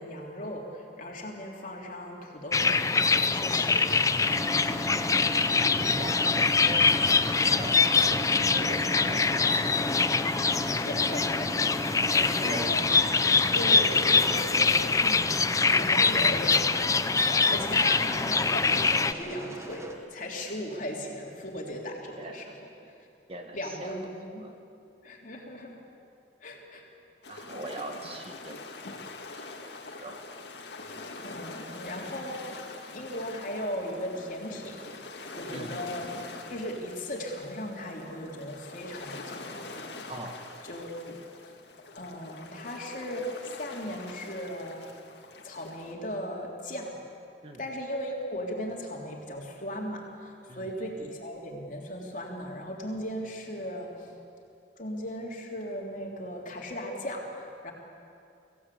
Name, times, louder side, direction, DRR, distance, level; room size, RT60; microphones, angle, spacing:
voice 1, 0.0-4.8 10.6-11.7 12.0-14.7 15.0-15.3 15.6-17.0 17.5-22.5 22.8-23.1 23.5-24.5 25.0-25.9 26.4-26.8 31.0-35.0 35.3-36.1 36.5-40.0 40.6-41.2 41.9-44.9 45.4-47.0 47.6-54.1 54.8-57.7, equal, 45° left, 0 dB, 3.3 m, -37 dB
sound 1, 2.5-19.1, left 4 dB, 20° left, 0.5 m, -24 dB
sound 2, 4.2-19.9, equal, 15° right, 1.4 m, -38 dB
voice 2, 5.7-6.9 7.2-9.7 12.4-12.7 13.3-14.8 15.3-15.4 17.2-18.0 22.2-22.5 23.3-23.9 24.4-24.5 27.3-28.7 29.3-29.7 30.0-30.2 35.5-35.7 40.1-40.4 47.4-47.6 50.5-50.7, right 1 dB, 35° right, 4 dB, 1.6 m, -41 dB
sound 3, 27.2-45.9, left 3 dB, 70° left, 2.1 m, -44 dB
24.5 x 16.5 x 8.5 m, 2.6 s
head